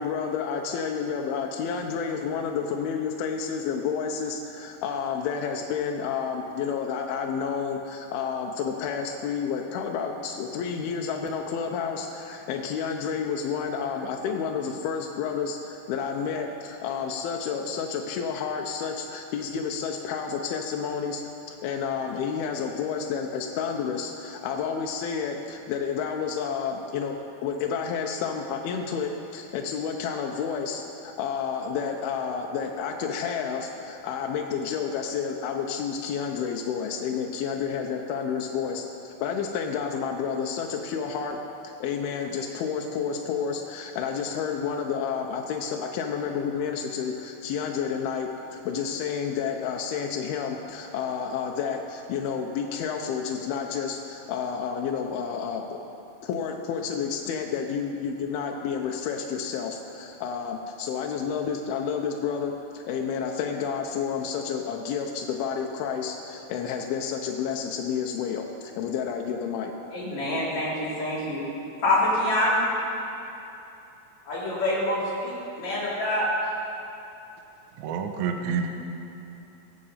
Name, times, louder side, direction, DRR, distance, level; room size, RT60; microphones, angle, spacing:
voice 1, 0.0-21.2 21.5-55.8 56.2-69.7, left 6 dB, 90° left, 1 dB, 2.7 m, -30 dB
voice 2, 69.9-71.4 71.8-72.8 74.3-76.3, left 1 dB, 50° left, -8 dB, 4.2 m, -26 dB
voice 3, 77.8-78.7, right 6 dB, 75° right, 5 dB, 1.8 m, -28 dB
20.5 x 7.8 x 5.6 m, 2.9 s
omnidirectional pair, 4.3 m